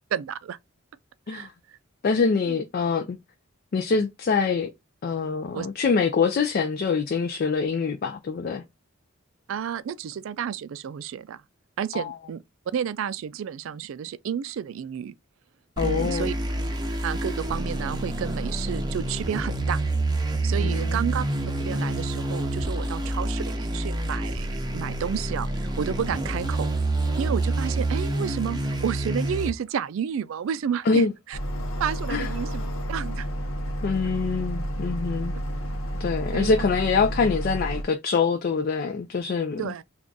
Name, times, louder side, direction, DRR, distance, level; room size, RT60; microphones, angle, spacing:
voice 1, 0.1-0.6 1.3-1.8 2.5-2.6 5.5-5.7 9.5-11.4 11.8-12.4 12.7-15.1 15.8-16.3 17.0-19.8 20.4-21.2 21.6-24.5 24.7-26.7 27.2-31.4 31.8-32.6 32.9-33.3 36.3-36.5 39.6-39.8, right 8 dB, 75° right, 0.3 m, -31 dB
voice 2, 2.0-3.2 3.7-4.7 5.0-8.6 11.9-12.1 15.8-16.3 20.6-21.0 30.9-31.1 32.1-32.3 33.8-35.3 36.0-39.7, left 5 dB, 45° left, 0.4 m, -25 dB
sound 1, 15.8-29.5, right 2 dB, 20° right, 0.6 m, -28 dB
sound 2, 31.3-37.8, equal, 85° left, 0.8 m, -30 dB
3.5 x 2.4 x 3.8 m
head